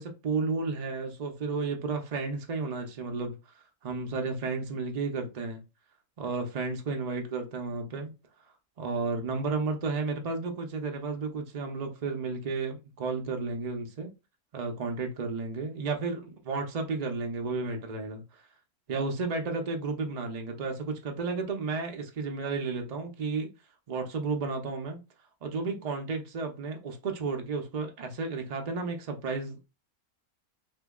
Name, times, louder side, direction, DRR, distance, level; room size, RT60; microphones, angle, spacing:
voice 1, 0.0-3.4 3.8-5.6 6.2-8.1 8.8-14.1 14.5-18.2 18.9-23.5 23.9-25.0 25.4-29.7, right 4 dB, 75° right, 0.3 m, -32 dB
2.9 x 2.6 x 3.5 m
omnidirectional pair, 1.6 m